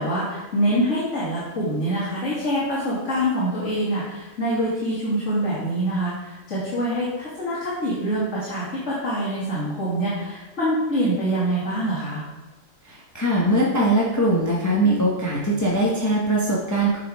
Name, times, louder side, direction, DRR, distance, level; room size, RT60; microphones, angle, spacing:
voice 1, 0.0-12.2, right 1 dB, 65° left, -10 dB, 2.6 m, -25 dB
voice 2, 12.8-17.0, right 1 dB, 15° left, -5 dB, 1.1 m, -21 dB
9.2 x 5.5 x 3.6 m, 1.1 s
omnidirectional pair, 1.3 m